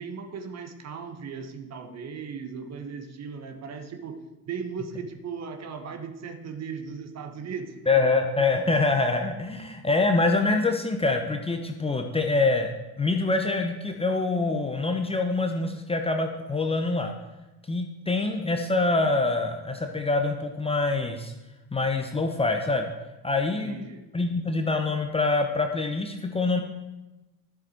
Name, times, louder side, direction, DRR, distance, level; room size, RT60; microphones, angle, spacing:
voice 1, 0.0-4.2 4.5-8.0 23.6-24.0, right 6 dB, 35° right, 7 dB, 1.4 m, -37 dB
voice 2, 7.9-12.7 13.0-17.1 17.7-21.3 21.7-22.9 23.2-23.8 24.1-26.6, left 3 dB, 10° left, 4 dB, 1.0 m, -25 dB
12.5 x 7.5 x 4.5 m, 1.1 s
figure-of-eight pair, 70°, 46 cm